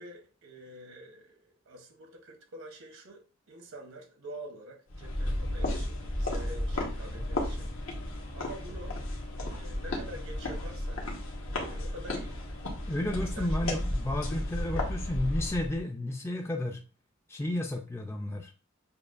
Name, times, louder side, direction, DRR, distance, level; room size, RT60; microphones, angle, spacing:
voice 1, 0.0-7.7 8.3-9.0 9.5-11.1 11.4-12.3 13.0-13.7, right 1 dB, 90° right, 0.9 m, -47 dB
sound 1, 4.9-15.8, left 1 dB, 85° left, 1.1 m, -33 dB
voice 2, 12.9-16.8 17.3-18.5, left 1 dB, 15° left, 0.3 m, -32 dB
6.7 x 2.4 x 2.4 m
head